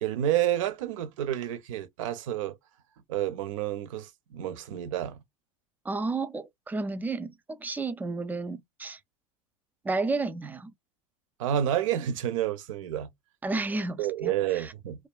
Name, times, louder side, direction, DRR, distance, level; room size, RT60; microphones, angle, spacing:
voice 1, 0.0-2.6 3.1-5.2 11.4-13.1 14.0-15.0, right 11 dB, 70° right, 0.7 m, -29 dB
voice 2, 5.9-9.0 9.8-10.7 13.4-14.7, right 3 dB, 10° right, 0.4 m, -32 dB
2.5 x 2.2 x 2.3 m
hypercardioid pair, 105°, 17 cm